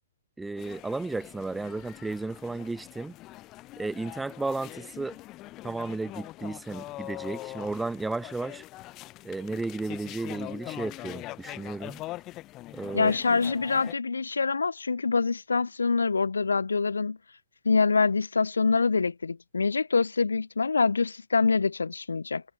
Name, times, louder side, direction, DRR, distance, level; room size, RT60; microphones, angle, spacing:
voice 1, 0.4-3.1 3.8-5.2 5.6-8.6 9.2-12.0 12.7-13.1, right 3 dB, 5° right, 4.2 m, -33 dB
sound 1, 0.6-13.9, left 17 dB, 30° left, 7.0 m, -43 dB
voice 2, 12.9-17.2 17.6-22.4, left 4 dB, 75° left, 5.9 m, -25 dB
figure-of-eight pair, 120°, 0 cm